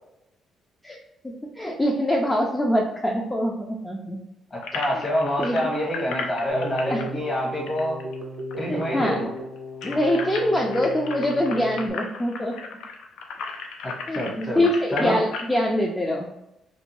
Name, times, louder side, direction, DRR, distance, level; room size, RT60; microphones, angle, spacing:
voice 1, 1.2-4.2 4.9-5.0 5.4-5.7 6.9-7.0 8.7-9.2 9.8-12.6 14.1-16.3, left 1 dB, 15° left, -1 dB, 0.4 m, -24 dB
voice 2, 4.5-8.0 8.6-9.3 13.8-15.2, equal, 40° left, -2 dB, 1.1 m, -27 dB
sound 1, 4.6-8.5 8.8-8.9 9.2-15.5, left 4 dB, 85° left, 0.4 m, -35 dB
Keyboard (musical), 6.5-11.9, left 1 dB, 55° right, 0.6 m, -35 dB
2.6 x 2.2 x 2.8 m, 0.86 s
cardioid pair, 90°, 0 cm